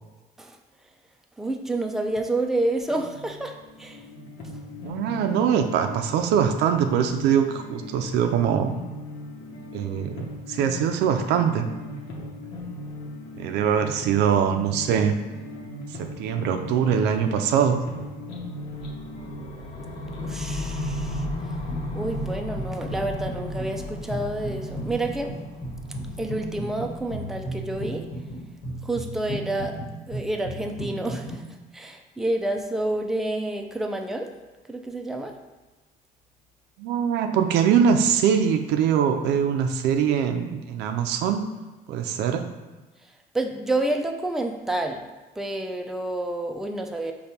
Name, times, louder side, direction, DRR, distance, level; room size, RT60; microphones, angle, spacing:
voice 1, 1.4-4.1 20.2-21.3 21.9-25.3 26.2-28.1 28.8-29.8 30.1-31.4 31.7-34.3 34.7-35.3 43.0-45.1 45.4-47.1, right 2 dB, ahead, 3 dB, 0.4 m, -29 dB
sound 1, 2.8-21.9, left 1 dB, 85° left, 0.8 m, -39 dB
voice 2, 4.8-8.7 9.7-11.7 13.4-15.2 16.0-17.8 36.8-41.4 41.9-42.5, right 8 dB, 85° right, 6 dB, 0.5 m, -23 dB
sound 2, 18.7-28.8, left 1 dB, 30° left, 0.7 m, -35 dB
sound 3, 21.7-22.3 22.5-31.4, right 1 dB, 60° left, 1.4 m, -35 dB
5.2 x 2.3 x 4.3 m, 1.2 s
cardioid pair, 110°, 17 cm